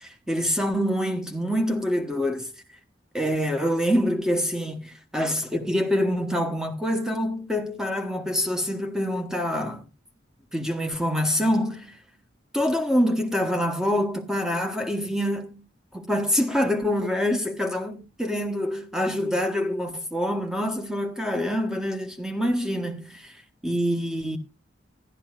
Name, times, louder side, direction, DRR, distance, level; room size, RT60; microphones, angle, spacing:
voice 1, 0.0-2.5 3.1-9.8 10.5-12.0 12.5-15.6 15.9-24.4, equal, 5° right, 1.1 m, -26 dB
14.5 x 11.5 x 2.4 m
head